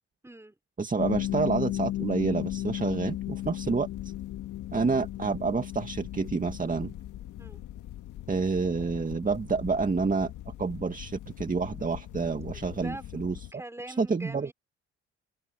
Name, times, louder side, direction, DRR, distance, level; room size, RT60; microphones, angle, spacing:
voice 1, 0.2-0.6 7.4-7.6 12.3-13.2 13.5-14.5, right 1 dB, 10° right, 5.6 m, -43 dB
voice 2, 0.8-3.9 4.7-6.9 8.3-10.3 10.6-13.4 14.0-14.5, right 4 dB, 25° right, 2.0 m, -28 dB
sound 1, 1.0-13.5, left 14 dB, 85° left, 1.7 m, -37 dB
open air
cardioid pair, 90°, 30 cm